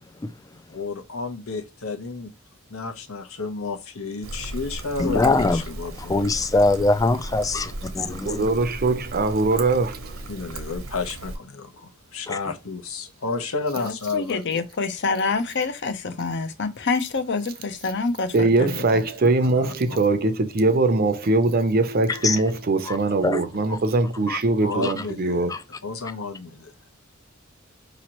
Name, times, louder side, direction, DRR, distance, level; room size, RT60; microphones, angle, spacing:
voice 1, 0.7-2.3 2.7-6.1 10.3-14.6 19.4-19.7 24.6-25.5 25.8-26.7, left 4 dB, 85° left, 1.0 m, -31 dB
Trickle dribble, 4.2-11.4, right 1 dB, 70° right, 0.9 m, -36 dB
voice 2, 5.0-5.6 6.0-8.4 12.3-12.4 22.1-22.4 22.9-23.0 23.2-23.4 23.7-23.8 24.3-24.4 24.8-24.9 25.5-25.6, left 2 dB, 15° left, 0.4 m, -22 dB
voice 3, 8.2-10.1 18.3-25.5, right 3 dB, 45° right, 0.6 m, -22 dB
voice 4, 13.8-19.0, left 4 dB, 55° left, 0.7 m, -27 dB
5.1 x 3.0 x 3.0 m
head